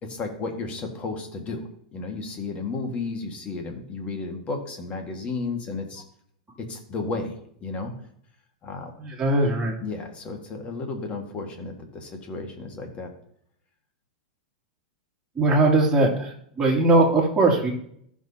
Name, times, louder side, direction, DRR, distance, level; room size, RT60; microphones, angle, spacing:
voice 1, 0.0-6.0 6.6-7.9 8.6-8.9 9.8-13.1, left 3 dB, 30° left, 3 dB, 1.8 m, -33 dB
voice 2, 9.0-9.7 15.3-17.7, right 2 dB, 15° right, -3 dB, 2.8 m, -20 dB
14.5 x 6.2 x 2.9 m, 0.67 s
hypercardioid pair, 120°, 4 cm